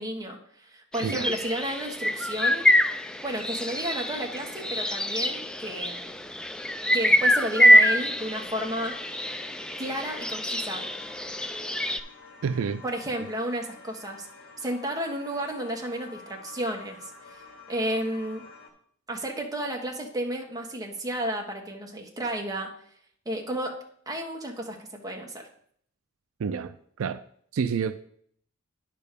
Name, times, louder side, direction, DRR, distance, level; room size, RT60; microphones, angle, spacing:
voice 1, 0.0-2.7 3.2-6.2 6.9-9.0 9.8-10.9 12.8-14.3 14.6-17.1 17.7-18.4 19.1-22.7 23.2-23.8 24.1-25.4, right 1 dB, 20° right, 1.3 m, -32 dB
sound 1, 0.9-12.0, equal, 5° left, 0.3 m, -25 dB
voice 2, 1.0-1.3 12.4-12.8 26.4-27.2 27.5-28.0, right 6 dB, 75° right, 0.4 m, -29 dB
sound 2, 8.2-18.7, left 4 dB, 60° left, 1.9 m, -49 dB
9.7 x 3.4 x 6.7 m
head